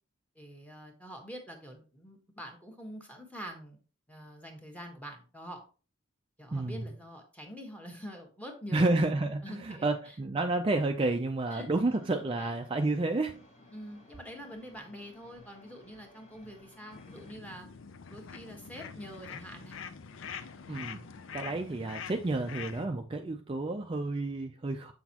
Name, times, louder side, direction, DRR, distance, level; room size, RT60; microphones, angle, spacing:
voice 1, 0.3-3.8 4.1-5.6 6.4-9.0 9.4-10.2 11.5-11.7 12.4-12.5 13.7-17.7 18.1-19.8, equal, 5° left, 1.3 m, -45 dB
voice 2, 6.5-6.8 8.7-13.4 20.7-21.0 21.3-24.9, right 2 dB, 25° right, 0.4 m, -30 dB
sound 1, 11.8-17.3, left 2 dB, 35° left, 1.2 m, -58 dB
sound 2, 16.9-22.9, left 6 dB, 65° left, 0.5 m, -45 dB
7.1 x 6.0 x 2.9 m
head